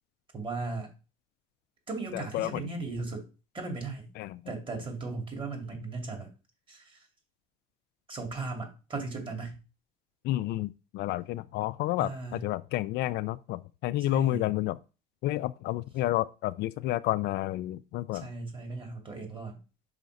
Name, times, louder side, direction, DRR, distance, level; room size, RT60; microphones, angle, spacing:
voice 1, 0.3-0.9 1.9-3.2 3.5-4.1 4.5-6.3 6.7-7.1 8.1-9.5 12.0-12.4 14.0-14.5 18.2-19.6, right 3 dB, 25° right, 2.5 m, -37 dB
voice 2, 2.1-2.6 4.2-4.5 10.2-14.8 15.2-18.3, left 16 dB, 60° left, 0.4 m, -30 dB
5.7 x 3.9 x 5.2 m
supercardioid pair, 110°, 20 cm